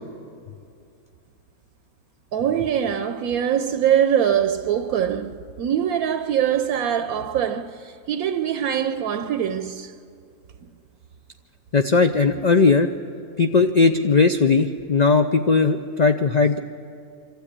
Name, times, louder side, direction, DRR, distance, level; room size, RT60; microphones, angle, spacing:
voice 1, 2.3-9.9, right 9 dB, 75° right, 1.1 m, -23 dB
voice 2, 11.7-12.9 13.4-16.6, left 4 dB, 85° left, 0.3 m, -18 dB
25.5 x 13.0 x 8.6 m
omnidirectional pair, 1.6 m